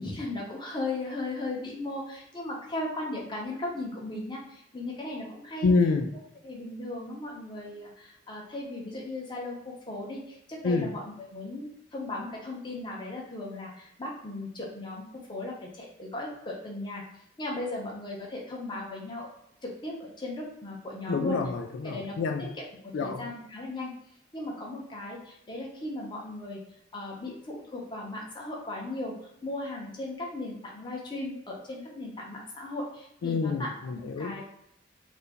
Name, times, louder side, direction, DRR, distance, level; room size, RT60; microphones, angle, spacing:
voice 1, 0.0-5.7 6.4-17.0 17.4-19.3 19.6-21.4 21.8-22.1 23.0-23.9 24.3-26.6 26.9-29.1 29.4-34.4, left 2 dB, 25° left, -2 dB, 0.7 m, -37 dB
voice 2, 5.6-6.2 10.6-11.0 21.1-22.5 22.9-23.3 33.2-34.4, left 4 dB, 70° left, 4 dB, 0.3 m, -27 dB
2.7 x 2.5 x 3.5 m, 0.77 s
head